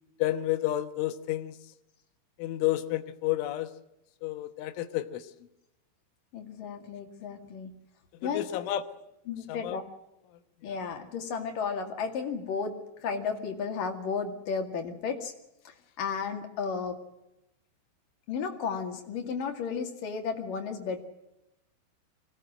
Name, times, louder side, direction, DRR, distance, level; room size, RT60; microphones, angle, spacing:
voice 1, 0.2-1.5 2.4-3.7 4.2-5.2 8.3-8.8 9.6-9.8, left 14 dB, 75° left, 10 dB, 3.3 m, -30 dB
voice 2, 6.3-7.7 8.2-8.6 9.3-9.8 10.6-15.3 15.6-17.0 18.3-21.0, left 5 dB, 50° left, 4 dB, 3.2 m, -33 dB
24.5 x 18.5 x 7.7 m, 0.88 s
omnidirectional pair, 6.0 m